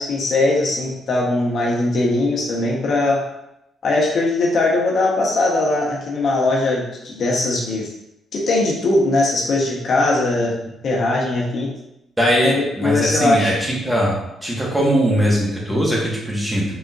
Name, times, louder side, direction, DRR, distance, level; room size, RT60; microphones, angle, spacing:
voice 1, 0.0-3.2 3.8-7.9 8.3-10.5 10.8-11.7 12.4-13.6, left 2 dB, 55° left, -2 dB, 0.9 m, -20 dB
voice 2, 12.2-14.1 14.4-16.6, equal, 10° right, -4 dB, 1.3 m, -20 dB
4.2 x 3.6 x 2.4 m, 0.85 s
cardioid pair, 90°, 0 cm